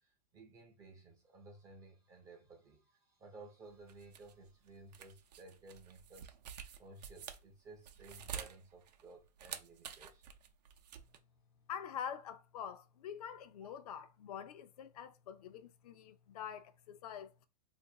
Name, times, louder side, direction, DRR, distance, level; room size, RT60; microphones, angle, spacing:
voice 1, 0.0-6.3 6.8-10.3 13.6-13.7, right 2 dB, 15° right, 0.5 m, -56 dB
sound 1, 3.7-11.2, right 8 dB, 70° right, 0.6 m, -49 dB
voice 2, 11.7-17.5, left 8 dB, 65° left, 0.5 m, -46 dB
2.6 x 2.6 x 3.7 m
hypercardioid pair, 155°, 21 cm